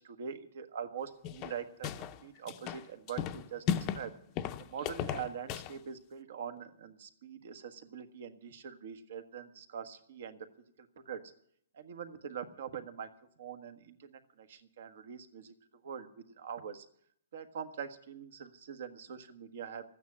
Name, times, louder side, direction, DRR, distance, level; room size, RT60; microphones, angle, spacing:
voice 1, 0.0-4.1 4.6-10.5 10.8-11.2 11.7-13.1 13.4-15.5 15.8-16.9 17.3-19.8, right 7 dB, 60° right, 10 dB, 1.4 m, -43 dB
sound 1, 1.2-2.2 2.5-4.1 4.4-5.8, left 9 dB, 25° left, 0.6 m, -35 dB
13.5 x 9.3 x 8.4 m, 0.68 s
hypercardioid pair, 165°, 0 cm